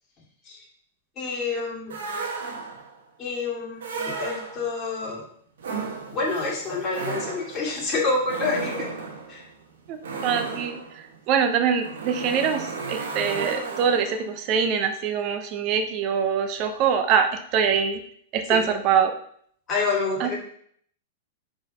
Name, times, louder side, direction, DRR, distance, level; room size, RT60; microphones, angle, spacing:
voice 1, 1.2-2.0 3.2-5.2 6.1-8.9 9.3-9.4 18.5-18.6 19.7-20.4, left 3 dB, 25° left, -4 dB, 2.5 m, -28 dB
sound 1, 1.9-3.0 3.8-4.8 5.6-14.3, right 4 dB, 80° right, 1.4 m, -34 dB
voice 2, 9.9-10.8 11.3-18.0 18.3-19.1 20.2-20.3, right 7 dB, 40° right, 7 dB, 0.7 m, -24 dB
5.0 x 3.9 x 5.5 m, 0.63 s
hypercardioid pair, 140°, 0 cm